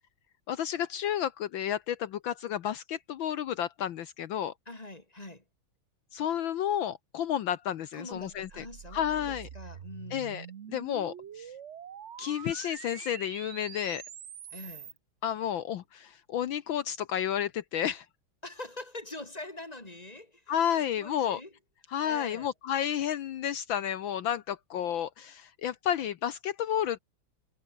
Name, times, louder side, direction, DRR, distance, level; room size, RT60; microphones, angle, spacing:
voice 1, 0.5-4.5 6.1-8.6 8.9-9.5 10.1-11.5 12.2-14.0 15.2-18.1 20.5-21.4 21.9-27.0, left 10 dB, 70° left, 1.6 m, -31 dB
voice 2, 4.7-5.4 7.9-10.4 14.5-15.0 18.4-21.5 22.0-22.5, left 2 dB, 15° left, 4.0 m, -44 dB
sound 1, 8.1-15.0, right 9 dB, 65° right, 0.7 m, -45 dB
omnidirectional pair, 2.4 m